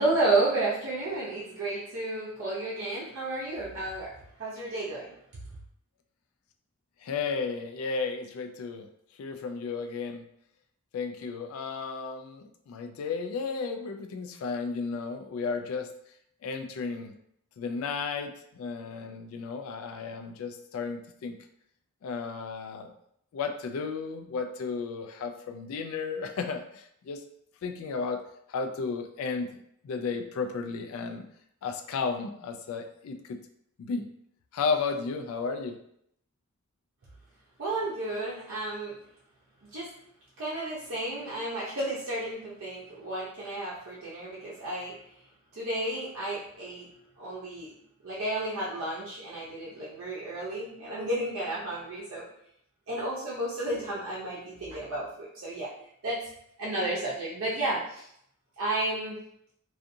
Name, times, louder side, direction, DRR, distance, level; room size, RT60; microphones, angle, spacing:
voice 1, 0.0-4.1 4.4-5.4 37.6-39.0 39.6-39.9 40.4-45.0 45.5-46.9 47.2-47.7 48.0-52.2 52.9-55.7 56.0-56.3 56.6-58.1 58.6-59.2, right 2 dB, 70° right, -7 dB, 0.6 m, -32 dB
voice 2, 7.0-8.9 9.2-10.2 10.9-15.9 16.4-17.1 17.6-21.4 22.0-22.9 23.3-27.2 27.6-28.2 28.5-31.2 31.6-33.4 33.8-34.1 34.5-35.8, left 5 dB, 70° left, 7 dB, 0.3 m, -33 dB
2.6 x 2.4 x 2.5 m, 0.72 s
head